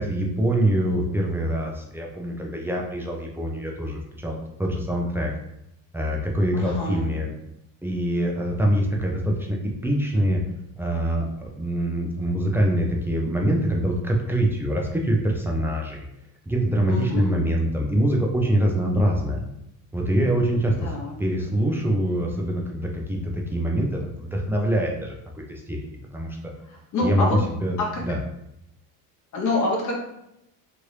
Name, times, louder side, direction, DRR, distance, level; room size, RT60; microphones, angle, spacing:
voice 1, 0.0-5.3 5.9-7.3 7.8-10.4 10.8-16.0 16.5-19.5 19.9-20.9 21.2-26.5 27.0-28.2, right 1 dB, 5° right, -1 dB, 0.4 m, -24 dB
voice 2, 6.5-7.1 16.9-17.4 20.8-21.1 26.7-27.4 27.8-28.0 29.3-29.9, left 2 dB, 50° left, -1 dB, 0.9 m, -26 dB
2.9 x 2.5 x 3.2 m, 0.81 s
cardioid pair, 135°, 37 cm